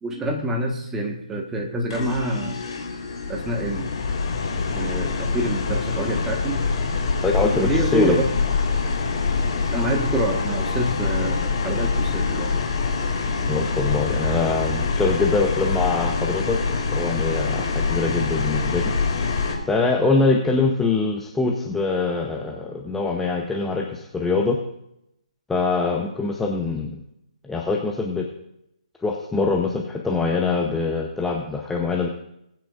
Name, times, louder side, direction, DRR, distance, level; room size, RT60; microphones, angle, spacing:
voice 1, 0.0-2.6 3.3-3.9 4.7-6.6 7.4-8.2 9.7-12.5, right 1 dB, 10° right, 1 dB, 1.4 m, -26 dB
sound 1, 1.9-19.5, left 4 dB, 45° left, 2.4 m, -25 dB
voice 2, 7.2-8.2 13.5-16.6 16.9-18.9 19.7-24.6 25.5-27.0 27.4-28.3 29.0-32.1, left 3 dB, 5° left, 1 dB, 0.7 m, -23 dB
20.5 x 9.1 x 2.5 m, 0.80 s
figure-of-eight pair, 135°, 4 cm